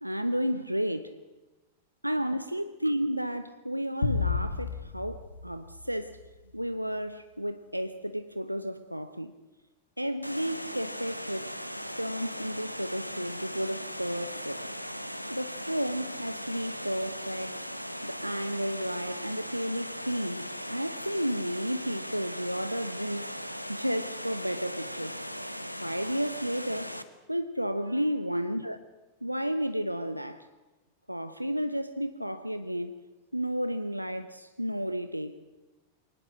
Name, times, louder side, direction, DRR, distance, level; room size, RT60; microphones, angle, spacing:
voice 1, 0.0-1.1 2.0-6.2 6.5-9.3 10.0-11.5 12.0-14.6 15.3-17.6 18.0-23.4 23.7-25.2 25.8-26.9 27.3-28.8 29.2-30.5 31.1-32.9 33.3-35.4, equal, 90° right, 0.8 m, -32 dB
sound 1, 4.0-6.5, left 5 dB, 75° left, 1.7 m, -32 dB
Water, 10.2-27.0, equal, 90° left, 1.2 m, -38 dB
23.5 x 19.5 x 7.7 m
figure-of-eight pair, 90°, 0 cm